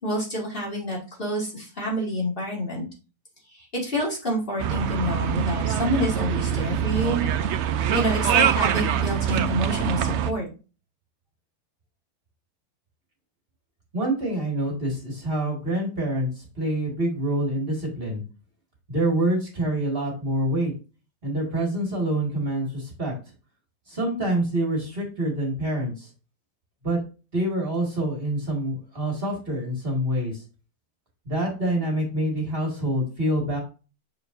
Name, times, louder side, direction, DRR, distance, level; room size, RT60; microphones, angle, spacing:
voice 1, 0.0-2.9 3.5-7.3 7.9-10.5, equal, 35° left, -3 dB, 2.4 m, -28 dB
sound 1, 4.6-10.3, right 9 dB, 65° right, 0.7 m, -24 dB
voice 2, 13.9-18.2 18.9-20.7 21.2-23.1 23.9-26.1 26.8-27.0 27.3-30.4 31.3-33.6, right 1 dB, 35° right, -1 dB, 2.2 m, -26 dB
6.7 x 6.6 x 2.6 m, 0.33 s
omnidirectional pair, 1.7 m